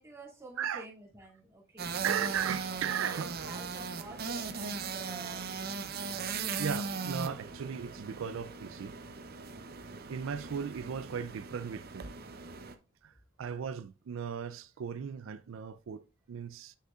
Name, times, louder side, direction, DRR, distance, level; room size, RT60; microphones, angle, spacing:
voice 1, 0.0-2.0 2.5-2.8 3.1-5.6, right 2 dB, 15° right, 2.4 m, -49 dB
sound 1, 1.8-12.7, right 5 dB, 50° right, 0.7 m, -39 dB
voice 2, 2.0-3.3 6.5-9.0 9.9-12.1 13.0-13.1 13.4-16.8, right 7 dB, 85° right, 0.4 m, -36 dB
7.8 x 6.3 x 2.4 m
head